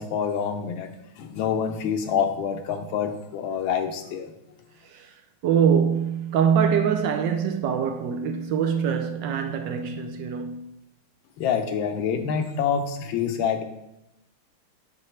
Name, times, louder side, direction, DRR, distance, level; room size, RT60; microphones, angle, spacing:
voice 1, 0.0-4.3 11.4-13.6, left 7 dB, 75° left, 1.4 m, -27 dB
voice 2, 5.4-10.7, right 7 dB, 75° right, 1.1 m, -24 dB
8.7 x 6.7 x 3.2 m
omnidirectional pair, 2.3 m